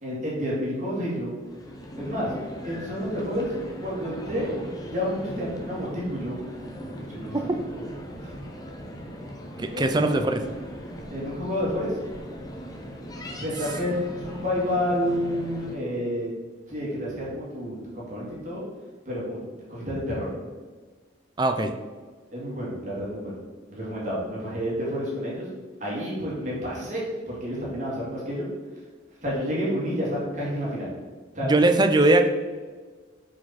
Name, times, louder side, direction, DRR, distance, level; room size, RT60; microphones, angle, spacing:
voice 1, 0.0-1.3 2.0-2.3 2.6-3.5 3.8-6.4 6.8-7.5 8.2-8.3 9.7-10.0 11.1-12.0 13.4-16.3 16.7-18.6 19.1-20.3 22.3-23.4 23.7-25.5 25.8-28.4 29.2-30.9 31.3-31.5, equal, 40° right, -6 dB, 2.1 m, -30 dB
sound 1, 1.4-15.7, equal, 20° left, 0.8 m, -39 dB
voice 2, 9.6-10.4 21.4-21.7 31.4-32.3, right 2 dB, 25° right, 6 dB, 0.5 m, -20 dB
6.3 x 4.9 x 4.2 m, 1.4 s
head